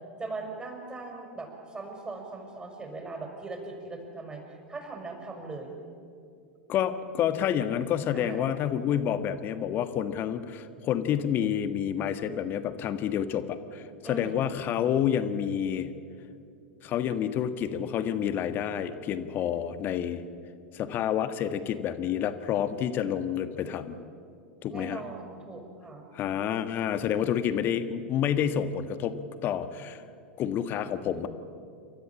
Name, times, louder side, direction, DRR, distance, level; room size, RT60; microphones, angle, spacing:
voice 1, 0.2-5.7 8.1-8.6 14.0-14.5 24.7-26.1, right 3 dB, 15° right, 2 dB, 5.6 m, -40 dB
voice 2, 6.7-15.9 16.8-20.2 20.7-24.0 24.6-25.0 26.1-29.2 29.4-30.0 30.4-31.3, left 9 dB, 35° left, 11 dB, 1.5 m, -29 dB
29.0 x 13.5 x 8.8 m, 2.4 s
figure-of-eight pair, 90°, 6 cm